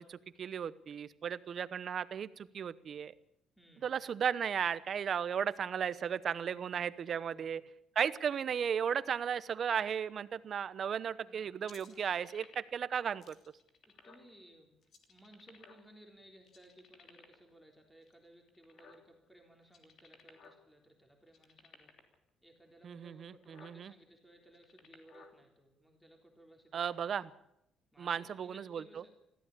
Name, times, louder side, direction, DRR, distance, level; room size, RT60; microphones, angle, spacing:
voice 1, 0.0-3.1 3.8-7.6 7.9-13.3 22.8-23.9 26.7-27.3 28.0-28.8, right 7 dB, 45° right, 16 dB, 0.9 m, -35 dB
voice 2, 3.6-3.9 7.1-7.5 11.2-11.5 11.9-12.0 13.9-14.8 15.1-22.0 22.4-27.2 27.9-29.1, right 1 dB, ahead, 2 dB, 3.6 m, -60 dB
sound 1, 11.6-12.8 13.2-14.3 14.8-16.1 16.4-17.5 18.0-19.3 19.6-20.6 20.9-21.0 21.3-22.1 22.8-22.9 23.3-23.8 24.4-25.3, left 5 dB, 55° left, 3.1 m, -58 dB
21.0 x 15.0 x 8.5 m, 0.81 s
cardioid pair, 135°, 0 cm